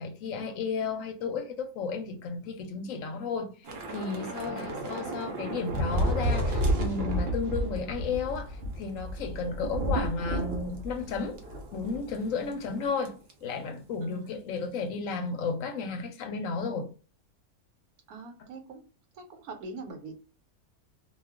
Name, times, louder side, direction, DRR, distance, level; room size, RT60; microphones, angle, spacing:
voice 1, 0.0-3.5 3.9-11.4 11.7-16.9, left 4 dB, 70° left, 0.9 m, -33 dB
Thunder / Rain, 3.6-12.2 12.5-12.7 13.0-13.3, equal, 55° right, 0.7 m, -31 dB
voice 2, 4.5-4.8 9.5-9.7 12.4-12.5 14.0-14.3 18.1-18.8 19.1-20.1, right 3 dB, 85° right, 1.1 m, -43 dB
2.4 x 2.3 x 3.4 m
omnidirectional pair, 1.6 m